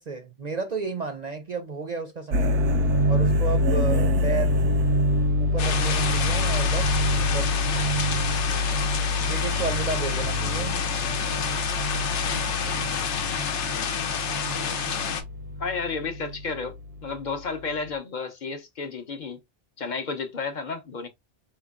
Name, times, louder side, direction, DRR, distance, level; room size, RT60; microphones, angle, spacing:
voice 1, 0.0-2.5 3.1-4.6 5.4-7.6 9.3-10.8, right 4 dB, 50° right, 0.6 m, -32 dB
sound 1, 2.3-17.5, left 1 dB, 80° right, 0.9 m, -26 dB
sound 2, 5.6-15.2, left 7 dB, 80° left, 1.0 m, -29 dB
voice 2, 15.6-16.7 17.0-19.4 19.8-21.1, left 4 dB, 45° left, 0.8 m, -32 dB
4.3 x 2.9 x 2.3 m
omnidirectional pair, 1.2 m